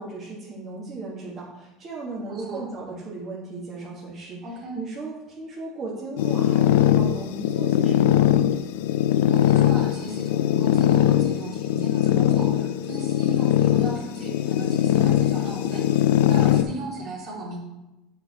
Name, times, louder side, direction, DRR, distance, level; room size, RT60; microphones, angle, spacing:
voice 1, 0.0-4.4 4.7-8.3, right 3 dB, 35° right, -7 dB, 1.7 m, -36 dB
voice 2, 2.3-2.7 4.4-4.8 9.3-17.6, right 1 dB, 50° right, -3 dB, 2.7 m, -36 dB
sound 1, 6.2-16.6, left 11 dB, 85° left, 0.4 m, -21 dB
7.8 x 4.7 x 4.2 m, 0.99 s
supercardioid pair, 120°, 0 cm